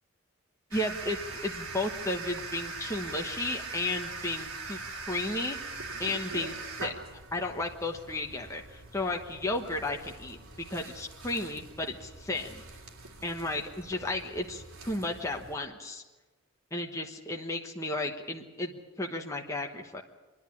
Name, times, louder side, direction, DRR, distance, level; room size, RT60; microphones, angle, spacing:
voice 1, 0.7-1.2 1.4-4.8 5.1-5.6 6.0-6.9 7.3-12.6 13.2-16.0 16.7-20.0, left 2 dB, 15° left, 1 dB, 1.1 m, -33 dB
sound 1, 0.7-15.6, right 3 dB, 80° right, 2.7 m, -42 dB
26.5 x 10.5 x 9.9 m, 1.2 s
head